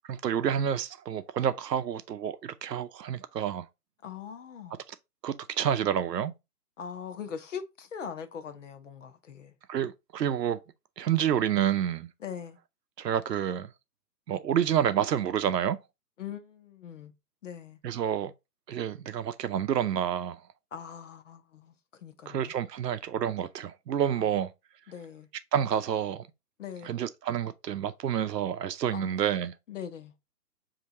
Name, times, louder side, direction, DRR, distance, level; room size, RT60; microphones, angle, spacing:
voice 1, 0.1-3.7 5.2-6.3 9.7-10.6 11.0-12.1 13.0-13.7 14.3-15.8 17.8-18.3 18.7-20.4 22.3-24.5 25.5-26.3 26.8-29.5, right 9 dB, 80° right, 0.6 m, -29 dB
voice 2, 4.0-4.8 6.8-9.6 12.2-12.6 16.2-17.1 17.4-17.8 20.7-22.5 24.2-24.4 24.9-25.3 26.6-26.9 28.9-29.2 29.7-30.1, left 7 dB, 50° left, 0.7 m, -41 dB
5.2 x 2.8 x 2.7 m
hypercardioid pair, 145°, 48 cm